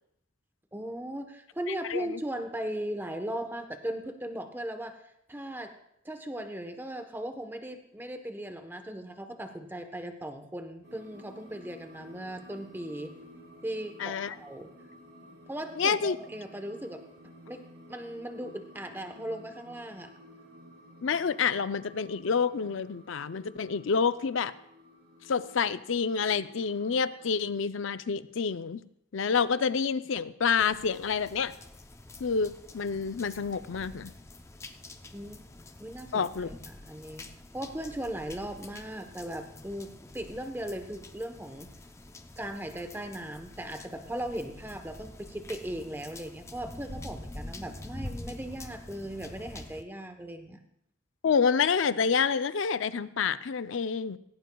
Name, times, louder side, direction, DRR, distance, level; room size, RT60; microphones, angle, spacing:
voice 1, 0.7-5.0 5.3-5.7 6.0-13.1 13.6-14.7 15.5-17.1 17.5-17.6 17.9-20.1 35.1-35.4 35.8-41.7 42.4-50.6, right 1 dB, 10° right, 6 dB, 1.0 m, -38 dB
voice 2, 1.7-2.1 14.0-14.3 15.8-16.2 21.0-24.5 25.3-28.8 29.1-31.5 32.2-34.1 36.1-36.5 51.2-54.2, left 6 dB, 70° left, 14 dB, 0.5 m, -28 dB
sound 1, 10.8-27.4, left 1 dB, 70° right, 5.3 m, -53 dB
sound 2, 30.6-49.8, left 2 dB, 15° left, 0.5 m, -46 dB
17.0 x 16.5 x 2.3 m, 0.75 s
head